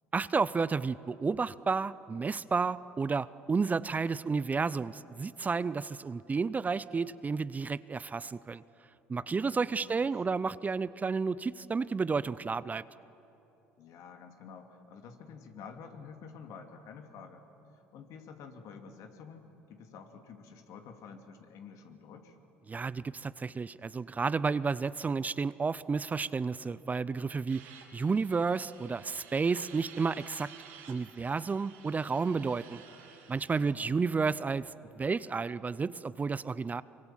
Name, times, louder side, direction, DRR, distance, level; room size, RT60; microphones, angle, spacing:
voice 1, 0.1-8.6 9.1-12.8 22.7-27.6 27.9-30.5 30.9-32.8 33.3-36.8, right 4 dB, 25° right, 17 dB, 0.6 m, -31 dB
voice 2, 9.2-10.2 13.8-17.4 17.7-22.4 33.5-34.0, left 6 dB, 65° left, 5 dB, 2.6 m, -50 dB
sound 1, 27.5-33.7, right 7 dB, 85° right, 3.5 m, -53 dB
25.0 x 24.0 x 7.5 m, 3.0 s
hypercardioid pair, 70°, 6 cm